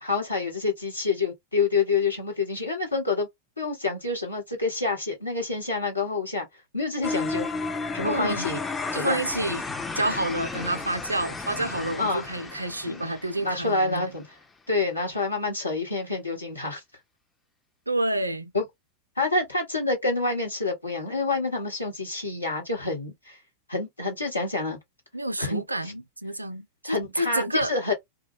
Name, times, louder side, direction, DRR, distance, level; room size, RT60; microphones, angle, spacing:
voice 1, 0.0-3.3 3.6-6.5 6.7-7.5 7.9-8.6 8.9-9.2 12.0-12.2 12.9-13.1 13.4-14.2 14.7-16.8 18.5-18.6 19.2-23.4 23.7-24.8 25.4-25.9 26.8-27.9, left 3 dB, 80° left, 1.1 m, -27 dB
sound 1, 7.0-14.0, left 3 dB, 15° left, 0.4 m, -33 dB
voice 2, 8.0-8.5 8.9-9.6 10.0-14.1 17.9-18.5 25.1-27.7, right 1 dB, 85° right, 0.4 m, -29 dB
2.2 x 2.2 x 3.1 m
figure-of-eight pair, 90°, 0 cm